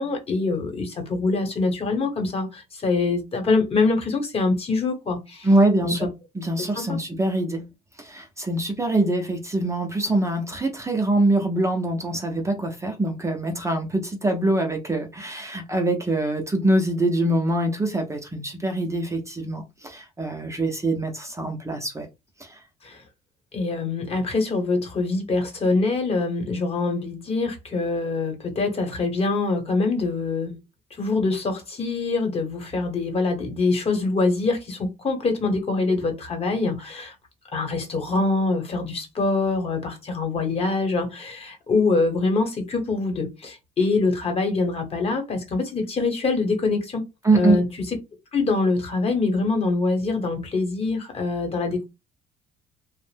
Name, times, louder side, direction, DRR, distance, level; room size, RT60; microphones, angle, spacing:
voice 1, 0.0-5.5 5.8-6.1 6.7-7.0 22.8-23.0 23.5-30.5 31.0-37.1 37.5-47.0 47.3-47.6 48.3-51.8, left 3 dB, 35° left, 1.0 m, -24 dB
voice 2, 5.4-6.1 6.3-7.6 8.0-22.1 22.4-22.6 47.2-47.6, right 2 dB, 15° right, 0.6 m, -24 dB
2.5 x 2.0 x 3.3 m
cardioid pair, 110°, 17 cm